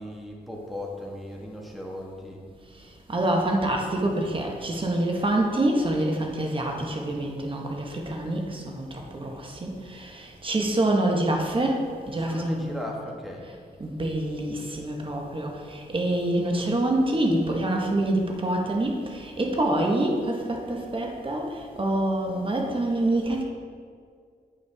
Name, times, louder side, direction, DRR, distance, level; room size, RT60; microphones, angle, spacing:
voice 1, 0.0-2.4 12.0-13.4, left 1 dB, ahead, -1 dB, 1.4 m, -37 dB
voice 2, 3.1-8.8 9.1-12.7 13.8-23.4, right 1 dB, 30° right, 1 dB, 1.2 m, -26 dB
8.9 x 5.6 x 3.4 m, 2.1 s
cardioid pair, 70°, 17 cm